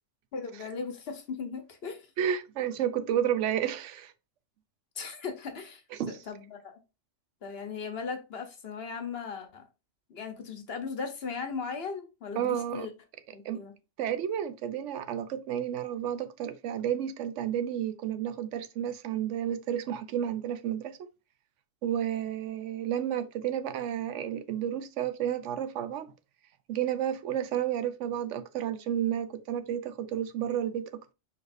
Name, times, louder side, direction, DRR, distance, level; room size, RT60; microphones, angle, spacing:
voice 1, 0.3-2.1 5.0-5.8 6.3-6.8 7.4-9.6 10.1-12.9 13.3-13.7, left 5 dB, 55° left, 1.1 m, -37 dB
voice 2, 2.2-4.1 6.0-6.2 12.4-12.9 13.4-13.6 14.0-21.0 21.8-26.1 26.7-31.1, right 10 dB, 80° right, 0.9 m, -31 dB
4.8 x 4.2 x 2.6 m
omnidirectional pair, 1.3 m